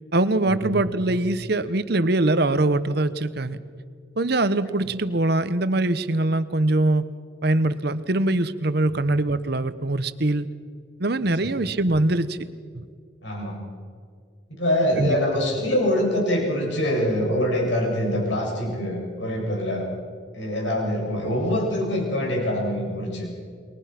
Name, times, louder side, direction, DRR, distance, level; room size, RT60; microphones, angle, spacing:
voice 1, 0.1-3.6 4.2-7.0 7.4-10.5 11.0-12.5 12.7-12.9 15.0-15.2, right 2 dB, 55° right, 14 dB, 1.0 m, -23 dB
voice 2, 13.2-13.6 14.5-19.9 20.3-23.3, left 1 dB, 65° left, -1 dB, 7.7 m, -24 dB
30.0 x 22.5 x 6.0 m, 2.1 s
head